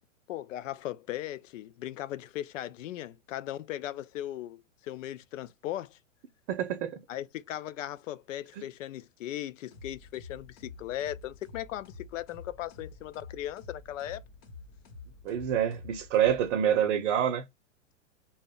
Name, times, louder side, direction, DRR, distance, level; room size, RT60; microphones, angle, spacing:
voice 1, 0.3-6.0 7.1-14.2, left 13 dB, 75° left, 0.5 m, -38 dB
voice 2, 6.5-7.0 15.2-17.5, right 9 dB, 65° right, 0.6 m, -27 dB
sound 1, 9.7-16.9, left 4 dB, 50° left, 1.0 m, -49 dB
2.1 x 2.1 x 3.5 m
hypercardioid pair, 140°, 39 cm